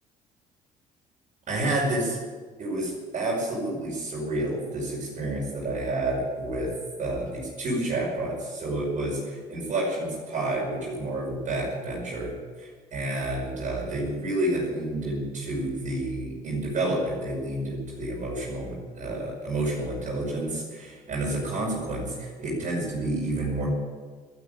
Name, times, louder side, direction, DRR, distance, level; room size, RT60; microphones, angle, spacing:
voice 1, 1.5-2.2 2.6-6.7 7.0-23.7, right 1 dB, 50° right, -4 dB, 5.7 m, -29 dB
14.0 x 9.7 x 9.5 m, 1.5 s
cardioid pair, 110°, 17 cm